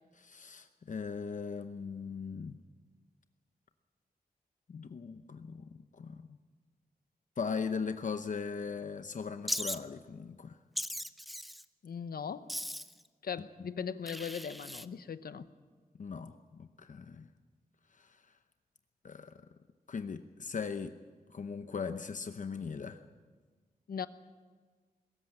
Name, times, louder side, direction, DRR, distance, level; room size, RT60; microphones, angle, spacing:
voice 1, 0.2-2.5 4.7-6.4 7.4-10.6 13.4-13.5 16.0-17.3 18.0-18.2 19.0-19.3 19.9-20.9 21.3-23.0, left 5 dB, 55° left, 9 dB, 0.8 m, -39 dB
Wild animals, 9.5-9.8 10.8-11.6 12.5-13.0 14.1-14.9, equal, ahead, 0.6 m, -38 dB
voice 2, 11.8-12.5 13.2-15.5 23.9-24.1, left 7 dB, 90° left, 13 dB, 0.9 m, -39 dB
22.5 x 14.0 x 8.9 m, 1.5 s
wide cardioid pair, 150°, 15 cm